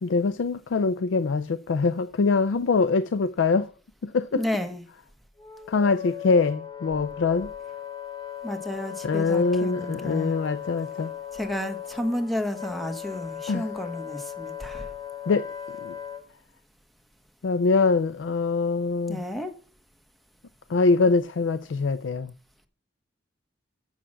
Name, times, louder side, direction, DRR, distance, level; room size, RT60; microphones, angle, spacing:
voice 1, 0.0-3.7 4.0-4.4 5.7-7.5 9.0-11.1 13.5-13.7 15.3-15.5 15.8-16.0 17.4-19.2 20.7-22.3, left 4 dB, 80° left, 0.4 m, -23 dB
voice 2, 4.3-4.8 8.4-10.3 11.3-14.9 19.1-19.5, left 1 dB, ahead, 1.0 m, -31 dB
Wind instrument woodwind instrument, 5.4-16.2, left 10 dB, 25° left, 1.5 m, -38 dB
7.3 x 6.9 x 7.4 m
head